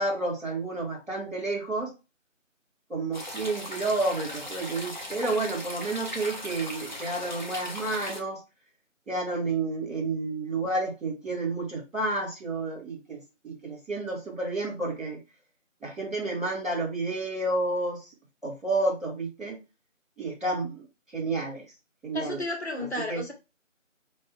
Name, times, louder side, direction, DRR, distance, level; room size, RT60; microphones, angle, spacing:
voice 1, 0.0-1.9 2.9-8.4 9.0-15.2 15.8-18.1 18.4-19.6 20.2-20.8 21.1-21.7 22.0-22.4 23.1-23.2, right 2 dB, ahead, 1.6 m, -30 dB
sound 1, 3.1-8.2, left 1 dB, 35° left, 0.8 m, -38 dB
voice 2, 22.1-23.3, left 2 dB, 55° left, 1.2 m, -32 dB
4.4 x 3.1 x 3.4 m
figure-of-eight pair, 165°, 39 cm